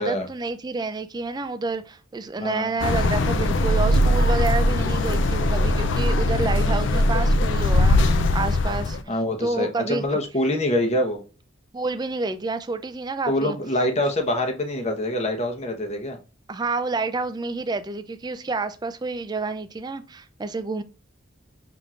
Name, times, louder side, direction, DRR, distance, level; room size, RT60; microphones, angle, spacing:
voice 1, 0.0-9.0 9.4-10.2 11.7-13.6 16.5-20.8, right 3 dB, 20° right, 0.4 m, -29 dB
voice 2, 2.4-2.7 6.4-6.8 9.1-11.2 13.3-16.2, left 1 dB, 35° left, 0.9 m, -25 dB
sound 1, 2.8-9.0, left 1 dB, 65° left, 0.4 m, -20 dB
5.7 x 3.5 x 2.4 m
head